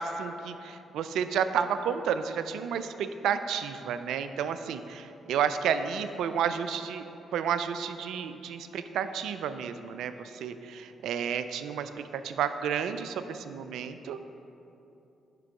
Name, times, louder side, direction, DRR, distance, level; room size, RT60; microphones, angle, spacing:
voice 1, 0.0-7.0 7.3-14.3, right 7 dB, 75° right, 10 dB, 0.3 m, -31 dB
11.0 x 3.7 x 4.7 m, 2.8 s
hypercardioid pair, 45°, 0 cm